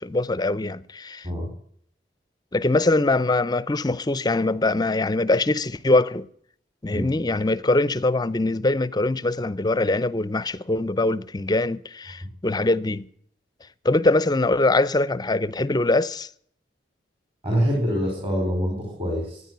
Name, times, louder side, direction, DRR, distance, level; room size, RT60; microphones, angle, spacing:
voice 1, 0.0-1.3 2.5-6.3 6.8-13.1 13.8-16.3, left 2 dB, 25° left, 0.6 m, -22 dB
voice 2, 17.4-19.4, equal, 35° right, 5.0 m, -25 dB
15.0 x 9.8 x 9.3 m
head